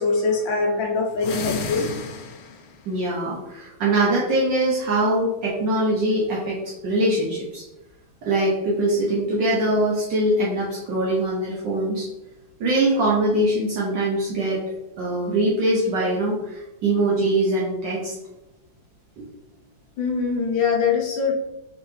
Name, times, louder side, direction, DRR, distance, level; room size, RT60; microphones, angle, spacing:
voice 1, 0.0-1.9 20.0-21.3, left 4 dB, 70° left, 0 dB, 1.4 m, -23 dB
sound 1, 1.1-2.8, left 5 dB, 85° left, 1.5 m, -31 dB
voice 2, 2.9-7.6 8.2-12.1 12.6-14.6 15.0-18.2 19.2-19.3, right 1 dB, 65° right, -5 dB, 1.4 m, -22 dB
4.0 x 3.8 x 3.1 m, 0.96 s
omnidirectional pair, 2.3 m